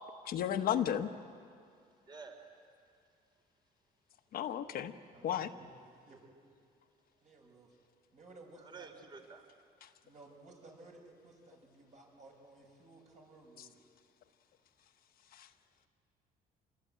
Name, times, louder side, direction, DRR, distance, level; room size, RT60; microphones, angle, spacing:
voice 1, 0.2-1.1 4.3-4.9 5.2-5.5 9.8-9.9 15.3-15.5, left 10 dB, 60° left, 7 dB, 1.2 m, -33 dB
voice 2, 2.1-2.5 8.6-9.4, right 4 dB, 25° right, 5 dB, 3.5 m, -50 dB
voice 3, 5.1-5.7 6.1-6.2 7.2-7.7 8.1-8.9 10.0-13.8, right 2 dB, 45° right, 1 dB, 6.9 m, -57 dB
27.5 x 21.0 x 9.1 m, 2.3 s
cardioid pair, 110°, 17 cm